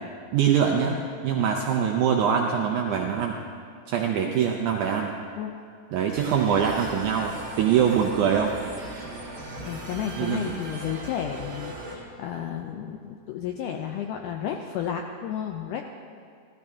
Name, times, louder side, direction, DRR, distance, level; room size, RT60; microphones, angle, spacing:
voice 1, 0.3-1.0 1.2-3.4 3.9-5.2 5.9-8.5 10.2-10.6, right 8 dB, 80° right, 1 dB, 1.8 m, -23 dB
sound 1, 6.1-12.0, right 1 dB, 25° right, 1.7 m, -38 dB
voice 2, 9.6-15.8, left 9 dB, 80° left, 3 dB, 1.8 m, -32 dB
15.5 x 13.5 x 3.6 m, 2.2 s
omnidirectional pair, 4.3 m